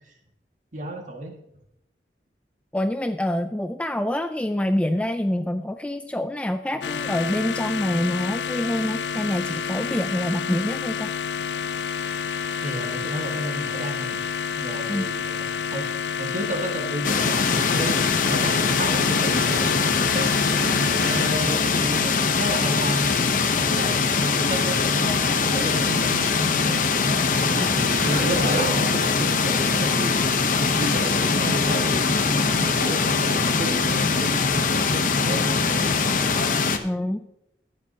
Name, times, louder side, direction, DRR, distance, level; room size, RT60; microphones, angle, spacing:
voice 1, 0.7-1.3 12.6-14.2 14.6-15.9 16.2-23.0 23.5-25.1 25.4-26.8 27.4-30.2 30.7-34.3 34.7-36.1, right 1 dB, 45° right, 2 dB, 1.8 m, -31 dB
voice 2, 2.7-11.1 14.9-15.1 36.8-37.2, left 1 dB, 5° left, 8 dB, 0.3 m, -26 dB
sound 1, 6.8-21.3, left 6 dB, 85° left, 0.4 m, -29 dB
sound 2, 17.0-36.8, left 4 dB, 50° left, 0.8 m, -22 dB
Skateboard, 24.2-31.7, right 2 dB, 80° right, 2.4 m, -36 dB
14.0 x 10.0 x 2.8 m, 0.80 s
head